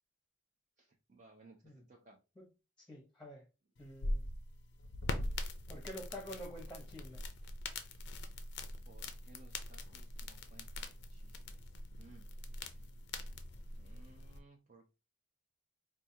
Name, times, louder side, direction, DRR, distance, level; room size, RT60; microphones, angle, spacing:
voice 1, 0.8-2.2 8.8-11.6 12.0-12.3 12.6-12.9 13.7-14.9, right 3 dB, 40° right, 0.5 m, -61 dB
voice 2, 2.8-3.4 3.8-4.2 5.7-7.2, equal, 5° left, 0.8 m, -48 dB
sound 1, 3.8-14.4, left 2 dB, 60° left, 0.5 m, -43 dB
4.6 x 2.3 x 2.7 m
head